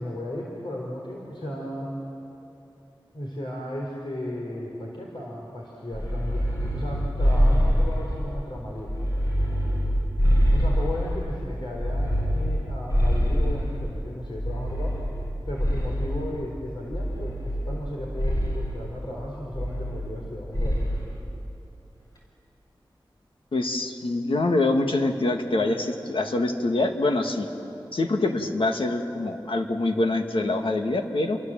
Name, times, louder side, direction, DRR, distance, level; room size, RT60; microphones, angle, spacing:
voice 1, 0.0-1.9 3.1-8.9 10.5-15.0 15.5-20.8, left 1 dB, 65° left, -2 dB, 4.0 m, -35 dB
sound 1, 5.9-8.4 8.8-11.3 11.7-13.9 14.4-16.3 16.9-17.9 18.2-18.7 19.5-20.3 20.5-21.0, equal, 45° left, 6.0 m, -24 dB
voice 2, 23.5-27.5 27.9-31.4, left 2 dB, 80° left, 4 dB, 1.9 m, -25 dB
29.5 x 24.5 x 7.6 m, 2.9 s
wide cardioid pair, 65°, 9 cm